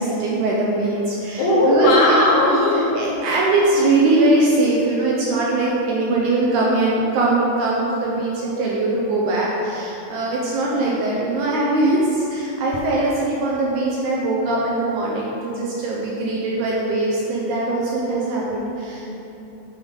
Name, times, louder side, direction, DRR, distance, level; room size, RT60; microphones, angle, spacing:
voice 1, 0.0-2.2 2.9-19.1, right 2 dB, 75° right, -4 dB, 1.8 m, -21 dB
voice 2, 1.4-3.0 19.0-19.1, left 1 dB, 80° left, -3 dB, 3.3 m, -17 dB
9.1 x 7.1 x 3.7 m, 2.9 s
omnidirectional pair, 4.5 m